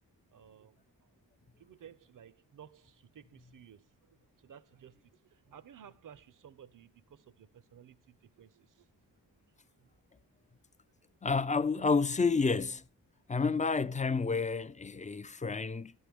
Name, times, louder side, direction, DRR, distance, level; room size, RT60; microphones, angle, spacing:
voice 1, 0.3-1.1 1.6-8.9 9.8-9.9, right 9 dB, 50° right, 0.6 m, -56 dB
voice 2, 11.2-12.9 13.3-15.9, left 4 dB, 20° left, 0.3 m, -30 dB
11.0 x 6.2 x 3.5 m
cardioid pair, 45°, 40 cm